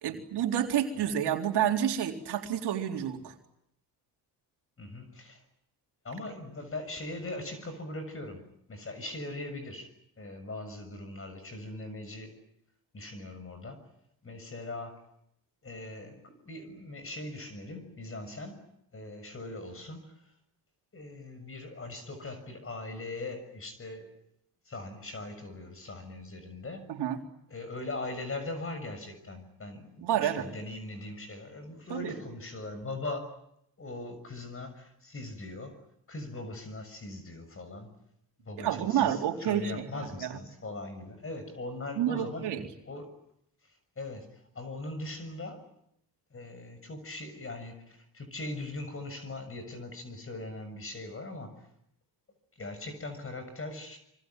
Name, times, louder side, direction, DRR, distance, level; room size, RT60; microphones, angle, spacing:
voice 1, 0.0-3.3 26.9-27.2 30.0-30.5 31.9-32.1 38.6-40.4 42.0-42.6, right 10 dB, 75° right, 3 dB, 4.0 m, -29 dB
voice 2, 4.8-5.4 6.0-9.9 10.2-12.4 12.9-13.9 14.2-15.0 15.6-18.6 18.9-20.3 20.9-24.1 24.6-26.9 27.5-33.4 33.8-35.8 36.1-37.9 38.4-42.5 42.8-43.1 43.6-45.6 46.3-51.7 52.5-54.0, left 2 dB, 30° left, 9 dB, 6.7 m, -40 dB
25.5 x 25.0 x 9.2 m, 0.76 s
cardioid pair, 85°, 41 cm